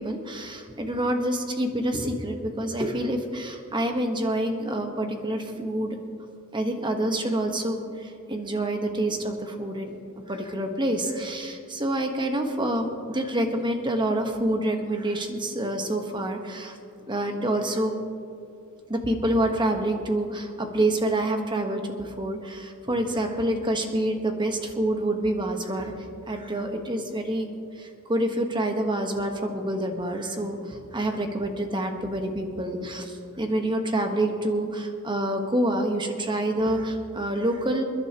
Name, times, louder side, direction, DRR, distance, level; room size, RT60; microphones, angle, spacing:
voice 1, 0.0-6.0 6.5-10.0 10.3-16.8 17.1-17.9 18.9-25.9 26.3-27.5 27.8-37.8, right 1 dB, 20° right, 4 dB, 1.3 m, -27 dB
28.0 x 11.0 x 3.0 m, 2.4 s
head